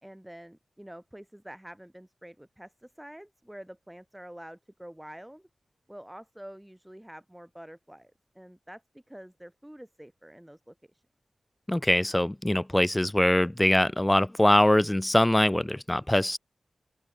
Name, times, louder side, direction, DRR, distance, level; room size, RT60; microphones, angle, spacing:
voice 1, 0.0-5.5 5.9-11.0, equal, 5° right, 4.8 m, -47 dB
voice 2, 11.7-16.4, left 1 dB, 10° left, 0.4 m, -23 dB
open air
wide cardioid pair, 125°, 0 cm